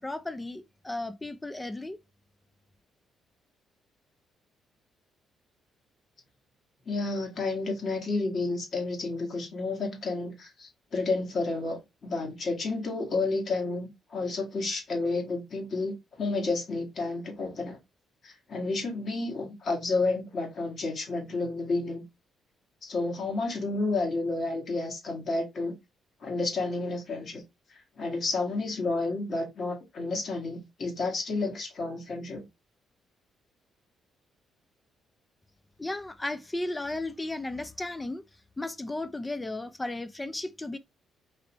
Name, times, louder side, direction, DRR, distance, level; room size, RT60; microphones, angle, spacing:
voice 1, 0.0-2.0 35.8-38.2 38.6-40.8, left 2 dB, 15° left, 0.5 m, -35 dB
voice 2, 6.9-17.8 18.2-22.0 22.8-25.8 26.2-27.4 27.7-32.5, left 3 dB, 50° left, 2.0 m, -31 dB
4.0 x 2.9 x 3.1 m
cardioid pair, 90°, 0 cm